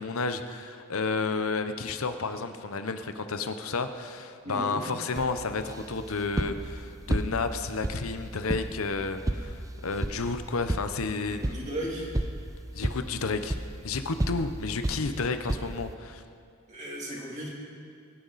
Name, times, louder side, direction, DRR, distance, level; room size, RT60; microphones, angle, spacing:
voice 1, 0.0-11.4 12.7-13.6 13.8-16.2, left 4 dB, 80° left, 9 dB, 0.8 m, -31 dB
voice 2, 4.4-4.8 11.3-12.2 16.7-17.5, right 1 dB, 35° right, -3 dB, 2.8 m, -36 dB
sound 1, 5.2-15.9, right 1 dB, 15° right, 0.6 m, -34 dB
22.5 x 10.0 x 4.1 m, 2.3 s
head